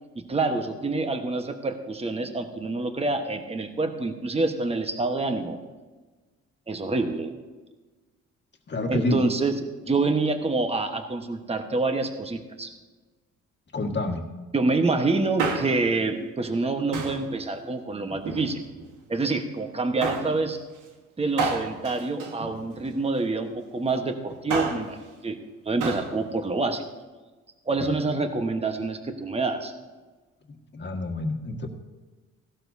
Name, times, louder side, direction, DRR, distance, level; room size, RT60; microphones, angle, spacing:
voice 1, 0.1-5.6 6.7-7.4 8.9-12.7 14.5-18.6 19.1-20.6 21.2-25.0 25.2-25.4 25.6-26.8 27.7-29.7, right 3 dB, 20° right, 6 dB, 1.2 m, -27 dB
voice 2, 8.7-9.2 13.7-14.2 27.8-27.9 30.5-31.7, left 2 dB, 35° left, 3 dB, 1.7 m, -28 dB
Male speech man speaking, 15.2-16.0 16.9-17.3 18.1-18.9 20.0-20.4 21.4-23.0 24.3-24.9 25.8-26.1 26.4-26.5, right 4 dB, 90° right, 1.5 m, -30 dB
16.5 x 12.0 x 2.8 m, 1.3 s
cardioid pair, 90°, 30 cm